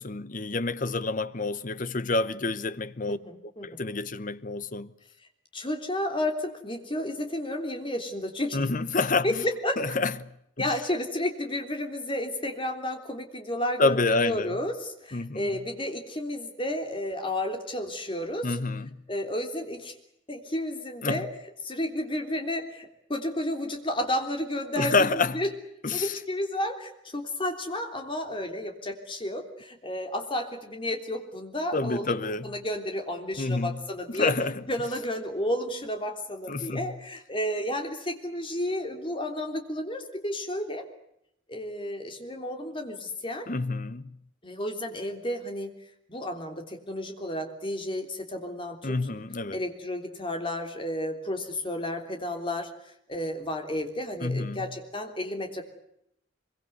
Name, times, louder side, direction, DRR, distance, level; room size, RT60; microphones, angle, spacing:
voice 1, 0.0-3.2 3.6-4.9 8.5-9.4 9.8-10.3 10.6-10.7 13.8-14.6 15.1-15.5 18.4-18.9 21.0-21.2 24.8-25.4 25.8-26.2 31.7-32.5 33.4-33.8 34.1-34.6 36.5-36.9 43.5-44.1 48.8-49.6 54.2-54.7, left 3 dB, 40° left, 0.9 m, -28 dB
voice 2, 3.1-3.8 5.5-8.6 9.2-9.8 10.6-18.6 19.1-19.9 20.3-21.3 21.6-25.5 25.9-34.3 34.7-40.9 41.5-43.5 44.4-49.0 49.5-55.6, left 1 dB, 25° left, 3.4 m, -32 dB
24.0 x 23.0 x 8.0 m
head